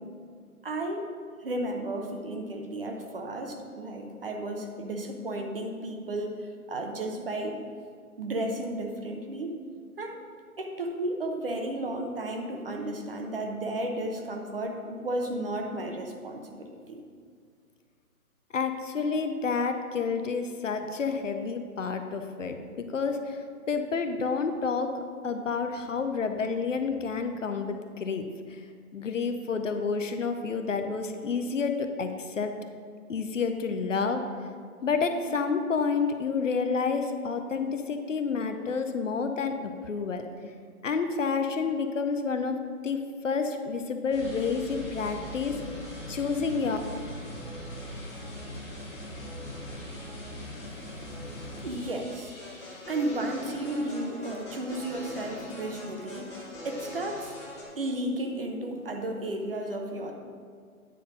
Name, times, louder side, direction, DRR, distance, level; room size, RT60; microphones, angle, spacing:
voice 1, 0.6-1.1 1.4-7.6 8.2-9.6 10.0-10.2 10.6-17.0 51.6-52.4 52.9-57.3 57.8-60.1, right 1 dB, 40° right, 2 dB, 0.8 m, -33 dB
voice 2, 18.5-23.4 23.7-28.6 28.9-32.5 33.1-34.2 34.8-39.5 39.9-40.2 40.8-45.6 46.1-46.8, left 5 dB, 55° left, 7 dB, 0.7 m, -29 dB
sound 1, 44.1-57.6, left 1 dB, 20° left, 1.0 m, -41 dB
9.1 x 4.4 x 5.2 m, 2.1 s
hypercardioid pair, 155°, 44 cm